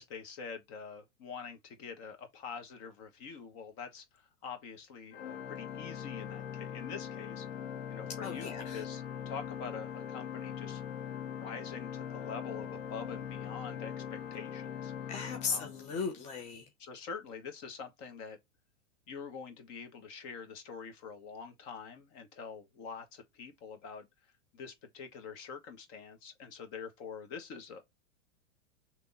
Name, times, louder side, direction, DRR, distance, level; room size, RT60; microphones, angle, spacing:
voice 1, 0.0-10.8 11.2-14.9 15.5-15.8 16.8-18.4 19.1-24.1 24.5-27.8, left 5 dB, 40° left, 1.3 m, -45 dB
Organ, 5.1-16.3, left 8 dB, 60° left, 1.5 m, -41 dB
voice 2, 8.2-8.8 15.1-16.7, left 5 dB, 20° left, 0.6 m, -37 dB
3.4 x 3.0 x 4.0 m
hypercardioid pair, 135°, 37 cm